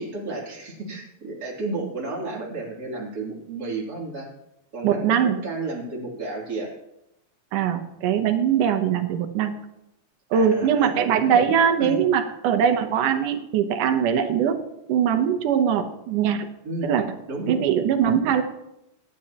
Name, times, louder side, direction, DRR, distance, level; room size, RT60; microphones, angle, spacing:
voice 1, 0.0-4.3 4.7-6.7 10.3-10.9 11.8-12.0 16.6-16.9 17.3-17.6, right 3 dB, 30° right, -4 dB, 3.3 m, -32 dB
voice 2, 4.8-5.4 7.5-9.5 10.3-14.6 14.9-16.5 16.8-17.0 17.5-18.4, right 8 dB, 90° right, 6 dB, 2.5 m, -21 dB
24.0 x 10.0 x 2.9 m, 0.86 s
omnidirectional pair, 3.5 m